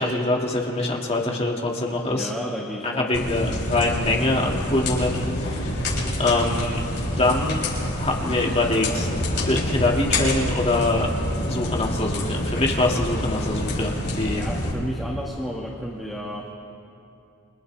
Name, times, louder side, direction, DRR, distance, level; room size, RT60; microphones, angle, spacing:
voice 1, 0.0-2.3 3.0-5.8 6.2-6.8 7.2-7.6 8.0-9.1 9.5-11.1 11.5-14.4, left 2 dB, 30° left, -1 dB, 2.1 m, -24 dB
voice 2, 2.1-3.3 14.4-16.5, equal, ahead, -3 dB, 1.7 m, -32 dB
sound 1, 3.1-14.7, left 1 dB, 50° left, 7.1 m, -27 dB
29.5 x 27.0 x 3.4 m, 2.6 s
head